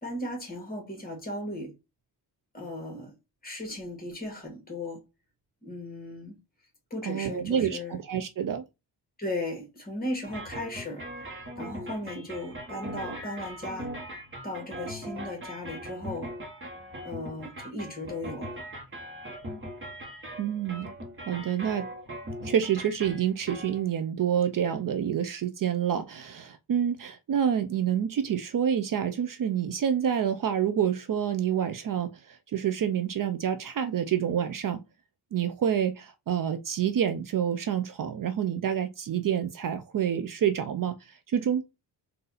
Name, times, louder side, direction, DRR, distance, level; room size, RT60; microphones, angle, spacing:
voice 1, 0.0-1.7 2.5-3.1 3.4-5.0 5.6-6.4 6.9-8.0 9.2-13.9 14.4-16.3 17.0-18.5, left 1 dB, 20° left, 1.9 m, -36 dB
voice 2, 7.0-8.6 20.4-20.9 21.3-21.9 22.4-34.8 35.3-41.6, right 9 dB, 50° right, 0.5 m, -28 dB
sound 1, 10.2-23.9, equal, 30° right, 1.3 m, -40 dB
4.0 x 2.6 x 4.0 m
wide cardioid pair, 130°, 42 cm